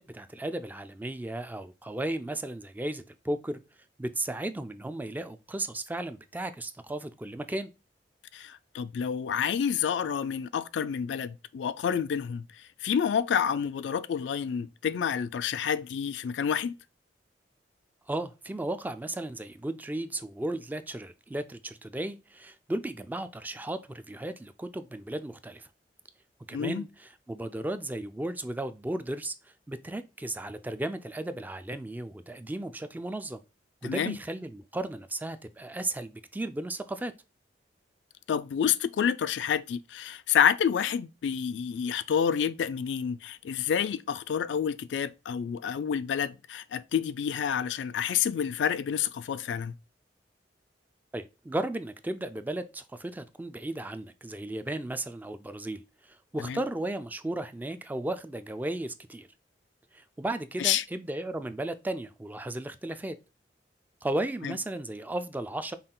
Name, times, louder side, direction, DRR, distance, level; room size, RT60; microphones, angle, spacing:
voice 1, 0.0-3.6 4.0-7.7 18.1-25.7 26.5-33.4 33.8-37.1 51.1-59.3 59.9-63.2 64.0-65.8, right 1 dB, 10° right, 0.3 m, -35 dB
voice 2, 8.3-12.4 12.8-16.7 26.5-26.9 33.8-34.2 38.3-49.7 56.4-56.6 60.6-60.8 64.4-64.5, left 8 dB, 80° left, 0.3 m, -29 dB
5.6 x 2.3 x 3.7 m
head